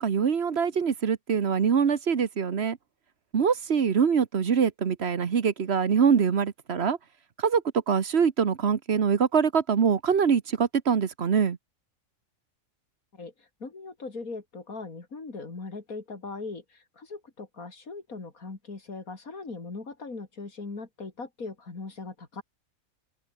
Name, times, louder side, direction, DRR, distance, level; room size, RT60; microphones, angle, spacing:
voice 1, 0.0-2.8 3.3-7.0 7.4-7.6 7.9-11.6, right 6 dB, 50° right, 1.3 m, -24 dB
voice 2, 13.1-22.4, left 3 dB, 85° left, 3.8 m, -40 dB
open air
omnidirectional pair, 1.5 m